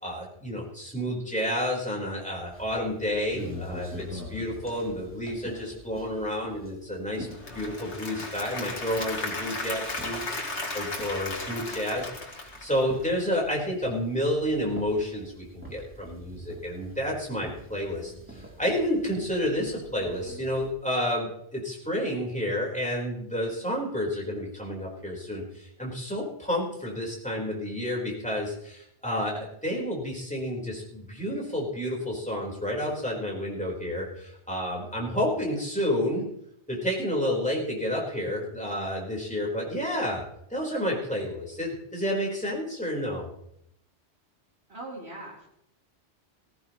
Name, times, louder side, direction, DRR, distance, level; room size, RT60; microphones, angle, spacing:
voice 1, 0.0-7.3 7.5-10.3 10.7-36.2 36.7-43.3, equal, 5° left, -3 dB, 4.2 m, -30 dB
sound 1, 2.5-20.7, equal, 10° right, 3.0 m, -45 dB
Applause / Crowd, 7.1-13.2, left 2 dB, 80° left, 2.4 m, -35 dB
voice 2, 44.7-45.5, right 2 dB, 65° right, -3 dB, 4.1 m, -40 dB
18.0 x 15.5 x 3.1 m, 0.75 s
omnidirectional pair, 1.2 m